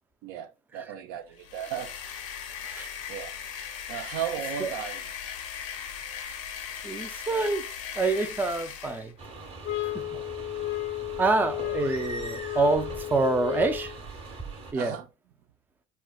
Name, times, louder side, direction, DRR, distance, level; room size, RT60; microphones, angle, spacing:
voice 1, 0.2-2.0 3.1-3.4 3.9-5.1 14.7-15.1, right 9 dB, 65° right, 0.5 m, -35 dB
sound 1, 1.4-9.1, left 8 dB, 90° left, 0.7 m, -38 dB
voice 2, 6.8-7.7 8.0-9.1 11.2-13.9 14.7-14.9, right 3 dB, 10° right, 0.4 m, -26 dB
sound 2, 9.2-14.7, right 3 dB, 40° right, 1.0 m, -41 dB
sound 3, 9.6-14.0, left 16 dB, 55° left, 0.4 m, -33 dB
4.2 x 2.2 x 2.2 m
supercardioid pair, 95°, 16 cm